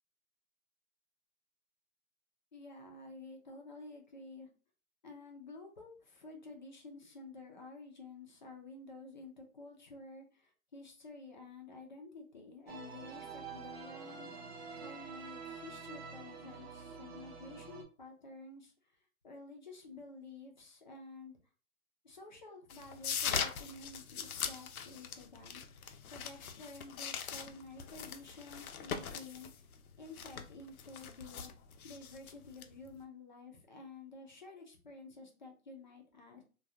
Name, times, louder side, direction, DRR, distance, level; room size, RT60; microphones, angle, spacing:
voice 1, 2.5-4.5 5.0-14.3 14.7-18.9 19.2-21.4 22.0-25.6 26.1-31.5 31.8-36.4, left 3 dB, 35° left, 2 dB, 0.4 m, -51 dB
sound 1, 12.7-17.8, right 5 dB, 50° right, 0.5 m, -47 dB
sound 2, 22.7-33.0, left 7 dB, 80° left, 0.6 m, -41 dB
2.2 x 2.2 x 2.7 m, 0.36 s
hypercardioid pair, 165°, 42 cm